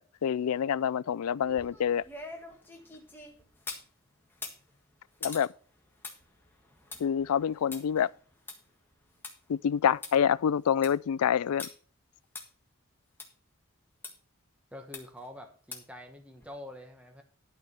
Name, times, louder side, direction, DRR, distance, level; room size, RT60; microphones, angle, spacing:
voice 1, 0.0-2.0 5.2-5.5 7.0-8.1 9.5-11.7, left 8 dB, 85° left, 0.4 m, -27 dB
sound 1, 1.4-3.9 4.3-9.3 9.7-9.8 10.0-10.1 10.6-11.0 11.6-11.7 12.4-12.5 13.2-13.3 14.0-14.1 14.9-15.3 15.7-16.0 16.4-16.5, left 3 dB, 10° left, 1.5 m, -44 dB
voice 2, 14.7-17.2, left 1 dB, 5° right, 1.0 m, -46 dB
12.0 x 4.4 x 6.6 m
head